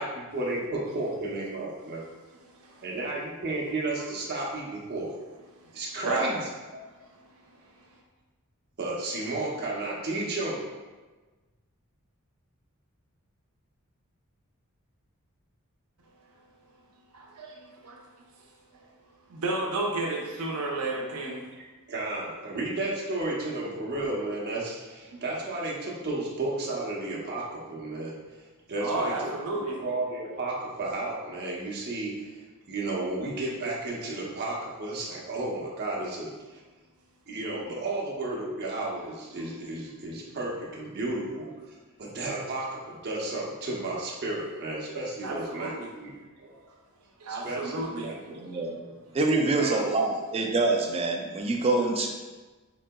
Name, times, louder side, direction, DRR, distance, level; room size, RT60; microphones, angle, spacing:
voice 1, 0.0-2.0 2.8-5.2 5.7-6.4 6.7-6.8 8.8-10.6 21.9-28.1 28.7-29.3 29.8-32.3 32.7-36.3 37.3-41.5 42.0-46.5 47.3-48.4 48.8-48.9 49.6-49.9, right 2 dB, 50° right, -3 dB, 0.8 m, -33 dB
voice 2, 17.1-18.0 19.3-21.5 28.8-29.8 45.2-45.9 47.2-48.1, right 2 dB, 80° right, -1 dB, 0.7 m, -32 dB
voice 3, 48.3-48.8 49.1-52.1, right 3 dB, 30° right, 1 dB, 0.4 m, -25 dB
3.9 x 3.7 x 2.2 m, 1.3 s
head